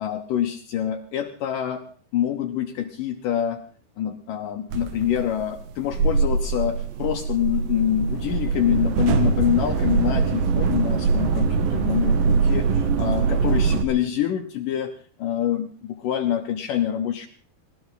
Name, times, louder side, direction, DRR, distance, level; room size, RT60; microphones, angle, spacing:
voice 1, 0.0-1.9 2.1-3.6 4.0-14.9 15.2-17.3, left 10 dB, 70° left, 6 dB, 2.3 m, -26 dB
sound 1, 4.7-13.8, right 5 dB, 70° right, 2.9 m, -22 dB
20.0 x 18.0 x 4.0 m, 0.41 s
omnidirectional pair, 4.4 m